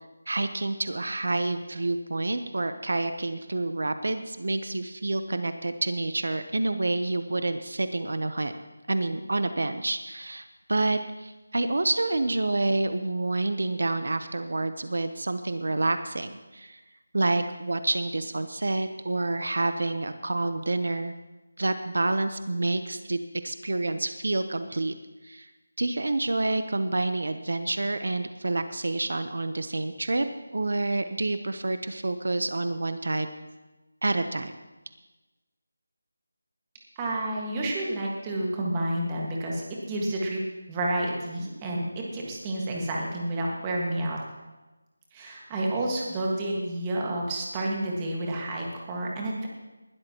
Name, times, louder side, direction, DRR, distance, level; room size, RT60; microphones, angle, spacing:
voice 1, 0.3-8.5 8.9-16.8 17.1-21.1 21.6-25.0 25.2-25.5 25.8-30.3 30.5-33.3 34.0-34.5, right 2 dB, 70° right, 9 dB, 0.8 m, -28 dB
voice 2, 37.0-40.4 40.7-44.2 45.1-49.5, right 1 dB, 15° right, -2 dB, 1.7 m, -30 dB
20.0 x 12.0 x 3.0 m, 1.1 s
figure-of-eight pair, 175°, 0 cm